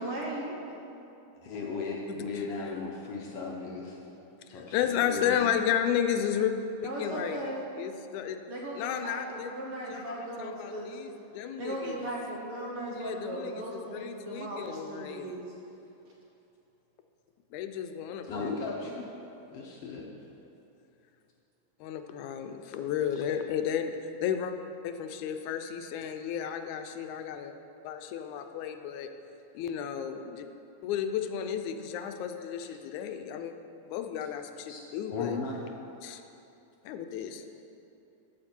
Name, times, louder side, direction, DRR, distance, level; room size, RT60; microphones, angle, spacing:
voice 1, 0.0-1.0 6.8-7.6 8.5-11.0 11.6-15.5, right 1 dB, 60° right, -3 dB, 1.7 m, -37 dB
voice 2, 1.4-4.0 4.5-5.4 18.3-19.0 19.5-20.1 32.6-32.7 34.7-34.8 35.1-35.6, left 4 dB, 65° left, -2 dB, 1.6 m, -36 dB
voice 3, 2.1-2.7 4.5-6.5 6.8-7.5 7.8-8.4 8.8-9.5 9.9-12.0 13.0-15.3 17.5-18.5 21.8-24.5 24.8-27.5 27.8-29.1 29.5-30.5 30.8-33.5 33.9-35.4 36.0-36.2 36.8-37.4, left 9 dB, 85° left, 7 dB, 2.0 m, -33 dB
13.5 x 6.5 x 4.4 m, 2.9 s
omnidirectional pair, 3.4 m